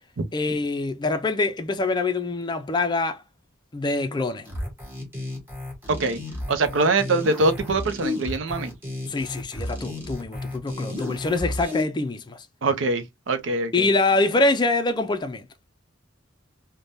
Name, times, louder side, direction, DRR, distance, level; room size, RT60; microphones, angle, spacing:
voice 1, 0.3-3.2 3.7-4.5 9.1-12.5 13.7-15.5, left 2 dB, 25° left, 0.4 m, -24 dB
sound 1, 4.4-11.8, left 2 dB, 10° right, 1.1 m, -33 dB
voice 2, 5.9-6.2 6.5-8.7 12.6-13.9, right 3 dB, 75° right, 0.6 m, -23 dB
3.4 x 2.2 x 2.5 m
head